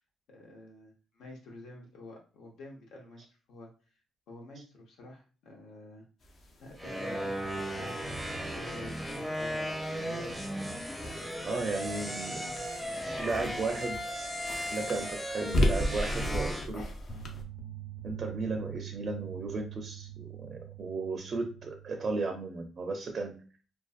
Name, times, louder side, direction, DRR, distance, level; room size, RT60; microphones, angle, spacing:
voice 1, 0.3-3.7 4.3-6.3 6.6-11.7 11.9-13.5, left 2 dB, 80° left, 0 dB, 0.9 m, -50 dB
sound 1, 6.2-17.4, left 1 dB, 55° left, 0.6 m, -37 dB
sound 2, 6.8-16.7, equal, ahead, 0.6 m, -36 dB
voice 2, 11.4-12.5 13.2-14.1 14.7-16.8 18.0-23.4, right 3 dB, 50° right, 2 dB, 0.4 m, -35 dB
sound 3, 17.1-22.1, right 12 dB, 35° left, 0.9 m, -44 dB
2.5 x 2.2 x 2.4 m, 0.38 s
cardioid pair, 90°, 0 cm